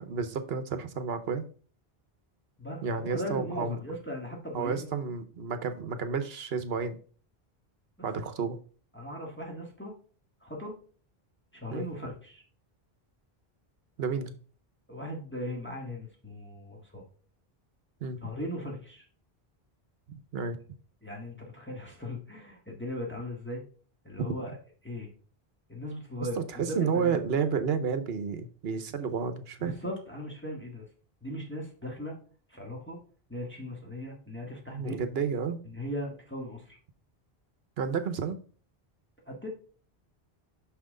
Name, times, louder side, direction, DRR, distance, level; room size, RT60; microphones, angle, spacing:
voice 1, 0.0-1.4 2.8-3.8 4.5-7.0 8.0-8.6 11.7-11.9 14.0-14.3 18.0-18.3 20.1-20.6 26.5-29.7 34.7-35.6 37.8-38.4, right 6 dB, 75° right, 10 dB, 1.0 m, -31 dB
voice 2, 2.6-4.9 8.0-8.1 8.9-9.9 10.4-10.8 11.5-12.4 14.9-17.0 18.2-19.1 21.0-23.6 24.0-24.6 24.8-25.1 25.7-27.2 29.6-30.9 31.2-32.1 32.5-33.0 33.3-35.0 35.6-36.8 39.2-39.5, left 1 dB, 10° left, -2 dB, 1.7 m, -38 dB
6.0 x 5.9 x 3.7 m, 0.41 s
omnidirectional pair, 1.0 m